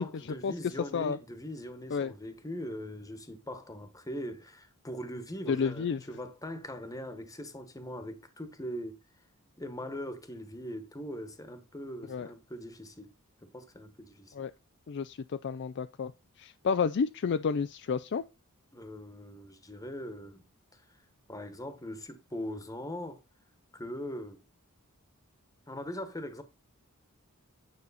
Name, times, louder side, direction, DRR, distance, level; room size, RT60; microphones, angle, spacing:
voice 1, 0.0-9.0 9.6-13.1 13.4-14.3 18.7-20.4 20.7-20.8 21.3-23.2 23.7-24.4 25.7-26.4, equal, 15° left, 1.2 m, -41 dB
voice 2, 5.5-6.0 12.1-12.3 14.3-14.5 14.9-16.1 16.4-18.2, left 5 dB, 50° left, 0.4 m, -30 dB
9.5 x 6.3 x 4.1 m
head